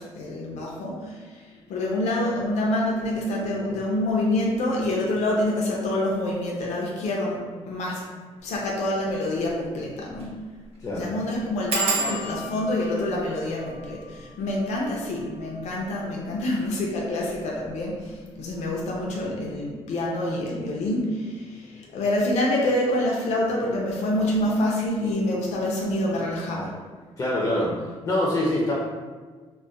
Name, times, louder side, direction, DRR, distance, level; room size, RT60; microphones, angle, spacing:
voice 1, 0.0-1.4 1.7-8.0 8.4-10.4 10.9-26.7 27.8-27.9, left 1 dB, 85° left, -3 dB, 0.5 m, -27 dB
sound 1, 8.5-8.7 9.1-9.2 9.5-9.6 10.1-10.4 10.6-10.7 11.7-17.0 17.7-18.2 18.5-18.8 19.1-19.2, right 3 dB, 60° right, 0.5 m, -34 dB
voice 2, 27.2-27.7 28.0-28.7, left 1 dB, 25° left, -4 dB, 0.4 m, -24 dB
2.3 x 2.1 x 3.7 m, 1.5 s
cardioid pair, 150°, 11 cm